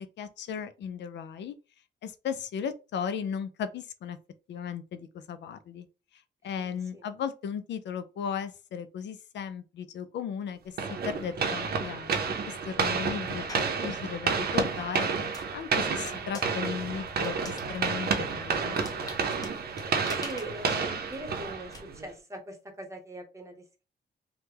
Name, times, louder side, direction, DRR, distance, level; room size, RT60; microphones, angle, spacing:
voice 1, 0.2-1.6 2.0-4.2 4.5-5.9 6.1-18.8, left 7 dB, 70° left, 0.4 m, -36 dB
voice 2, 6.4-7.0 20.1-23.8, right 1 dB, 15° right, 0.9 m, -42 dB
sound 1, 10.8-22.1, right 5 dB, 55° right, 0.6 m, -30 dB
sound 2, 13.5-13.8 14.4-21.8, left 2 dB, 20° left, 0.8 m, -47 dB
3.2 x 2.2 x 3.3 m
cardioid pair, 110°, 19 cm